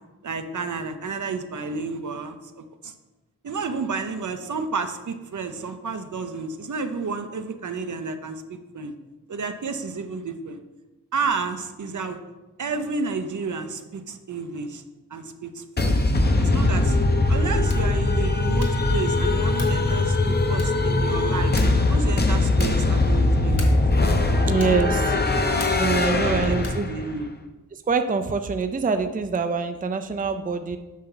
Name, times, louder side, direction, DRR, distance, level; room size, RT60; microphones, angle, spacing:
voice 1, 0.2-2.9 3.4-8.9 9.3-10.6 11.1-12.2 12.6-14.8 15.1-16.0 16.4-17.0 17.3-21.5 21.9-23.8 26.1-26.6 26.9-27.3, right 4 dB, 65° right, 8 dB, 0.7 m, -31 dB
sound 1, 15.8-27.2, left 2 dB, 30° left, 0.7 m, -21 dB
sound 2, 17.6-18.0 18.5-18.9 19.5-19.9 20.5-20.9 21.5-21.9 22.5-22.9 23.5-23.9 24.6-24.9 25.6-26.0 26.6-26.9, left 2 dB, 50° left, 1.7 m, -40 dB
voice 2, 24.4-25.2 25.8-26.9 27.7-30.8, right 4 dB, 25° right, 8 dB, 0.5 m, -25 dB
8.4 x 5.8 x 3.9 m, 1.1 s
wide cardioid pair, 85°, 32 cm